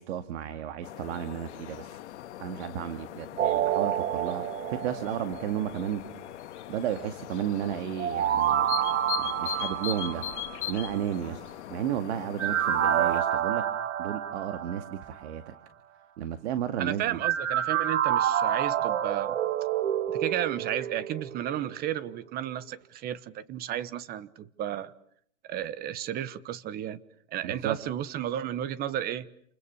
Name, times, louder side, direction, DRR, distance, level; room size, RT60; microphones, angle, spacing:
voice 1, 0.0-2.0 2.4-4.4 4.7-6.0 6.7-8.7 9.2-10.2 10.7-11.4 11.7-13.6 14.0-15.5 16.2-17.2 27.4-27.8, right 10 dB, 55° right, 2.2 m, -33 dB
sound 1, 0.8-13.2, left 12 dB, 60° left, 1.7 m, -40 dB
sound 2, 3.4-5.7 8.0-11.0 12.4-15.2 17.2-21.7 22.1-22.2, right 10 dB, 75° right, 2.0 m, -28 dB
voice 2, 16.8-19.4 20.1-24.9 25.5-27.0 27.3-29.3, right 11 dB, 25° right, 1.1 m, -33 dB
29.0 x 28.5 x 6.9 m
hypercardioid pair, 145°, 39 cm